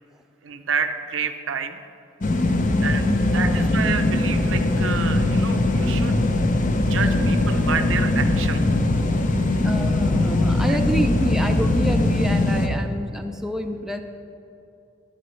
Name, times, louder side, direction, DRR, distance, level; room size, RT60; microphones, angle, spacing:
voice 1, 0.4-1.8 2.8-6.3 6.8-8.6 10.7-10.8, right 6 dB, 70° right, 8 dB, 0.6 m, -29 dB
sound 1, 2.2-12.7, left 2 dB, 40° left, 0.7 m, -21 dB
voice 2, 3.3-3.7 7.7-7.8 9.6-14.0, right 1 dB, ahead, 3 dB, 0.4 m, -28 dB
14.5 x 11.5 x 3.2 m, 2.7 s
head